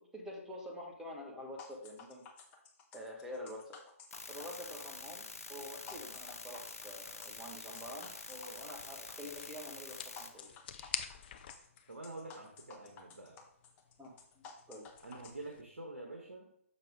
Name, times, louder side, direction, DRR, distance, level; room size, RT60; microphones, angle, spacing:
voice 1, 0.0-2.2 2.9-3.8 4.3-10.5 10.7-10.9 14.0-14.9, left 1 dB, 5° right, -1 dB, 1.4 m, -47 dB
sound 1, 1.6-15.3, left 5 dB, 20° left, 1.0 m, -54 dB
sound 2, 4.1-10.3, left 3 dB, 80° left, 0.9 m, -47 dB
sound 3, 4.3-15.6, left 8 dB, 40° left, 0.6 m, -50 dB
voice 2, 11.9-13.4 15.0-16.5, right 2 dB, 80° right, 2 dB, 1.3 m, -47 dB
7.0 x 5.6 x 3.7 m, 0.70 s
figure-of-eight pair, 135°, 8 cm